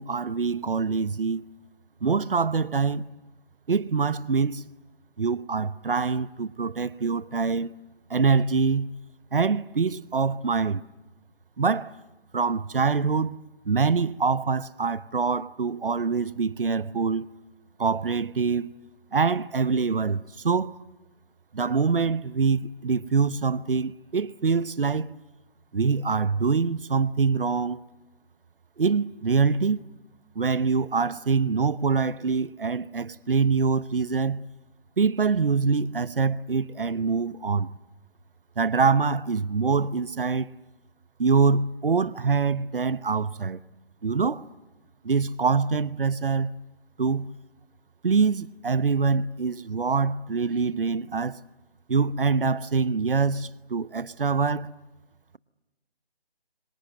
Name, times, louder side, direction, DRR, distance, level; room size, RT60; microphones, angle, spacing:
voice 1, 0.0-1.4 2.0-3.0 3.7-4.7 5.2-7.7 8.1-8.9 9.3-10.8 11.6-11.9 12.3-17.3 17.8-18.7 19.1-20.7 21.5-25.2 25.7-27.8 28.8-29.9 30.4-34.4 35.0-37.7 38.6-40.5 41.2-43.6 44.0-44.5 45.0-46.5 47.0-47.3 48.0-51.4 51.9-54.7, right 5 dB, 60° right, 0.9 m, -24 dB
29.5 x 25.5 x 7.9 m
figure-of-eight pair, 160°, 32 cm